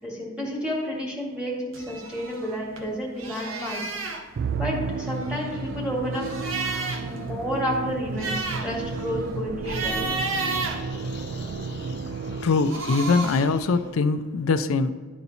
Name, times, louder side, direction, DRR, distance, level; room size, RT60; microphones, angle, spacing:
voice 1, 0.0-4.3 4.6-6.3 7.0-10.1, equal, 5° right, -4 dB, 2.3 m, -31 dB
sound 1, 1.7-2.9 3.2-4.2 5.0-7.2 7.5-7.6 8.0-11.5 12.5-13.6, right 3 dB, 75° right, 1.0 m, -32 dB
Musical instrument, 4.4-12.9, right 4 dB, 55° right, 0.3 m, -32 dB
sound 2, 8.4-10.1 10.4-13.9, left 2 dB, 55° left, 0.8 m, -43 dB
voice 2, 12.4-14.9, left 4 dB, 90° left, 10 dB, 0.4 m, -22 dB
12.0 x 4.2 x 4.1 m, 1.5 s
head